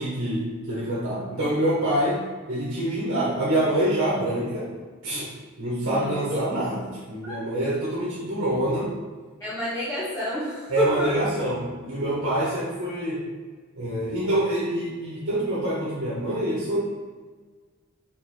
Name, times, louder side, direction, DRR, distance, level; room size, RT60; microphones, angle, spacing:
voice 1, 0.0-4.7 5.0-5.3 5.6-8.9 10.7-13.2 13.7-16.8, right 1 dB, 60° right, -7 dB, 1.5 m, -26 dB
voice 2, 5.8-6.4 7.3-7.4 9.4-11.1 12.5-12.6, left 1 dB, 15° left, -12 dB, 1.9 m, -29 dB
5.8 x 4.1 x 4.5 m, 1.5 s
head